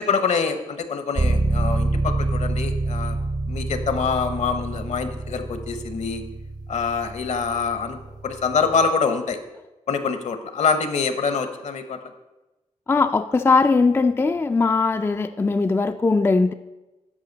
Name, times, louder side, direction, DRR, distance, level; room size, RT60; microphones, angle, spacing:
voice 1, 0.0-3.2 3.5-6.2 6.7-8.0 8.2-9.4 9.9-12.0, left 5 dB, 65° left, 9 dB, 0.9 m, -25 dB
sound 1, 1.1-8.9, right 2 dB, 30° right, 0.6 m, -27 dB
voice 2, 12.9-16.5, left 4 dB, 20° left, 8 dB, 0.3 m, -20 dB
12.5 x 4.9 x 4.0 m, 1.0 s
cardioid pair, 80°, 13 cm